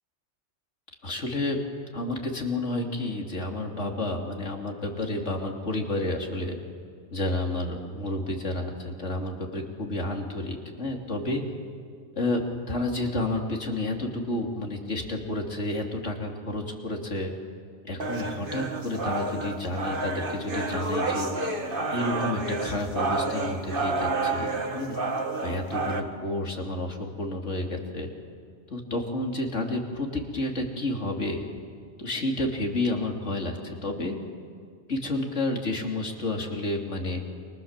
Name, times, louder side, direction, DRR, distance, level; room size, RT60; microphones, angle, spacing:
voice 1, 1.0-1.6 1.9-6.6 7.1-11.4 12.2-12.4 12.7-17.3 17.8-21.3 21.9-25.0 25.4-28.1 28.7-31.4 32.0-34.2 34.9-37.2, left 2 dB, 80° left, 2 dB, 3.3 m, -30 dB
sound 1, 18.0-26.0, right 3 dB, 50° right, 2.0 m, -30 dB
30.0 x 26.0 x 7.4 m, 2.3 s
omnidirectional pair, 1.2 m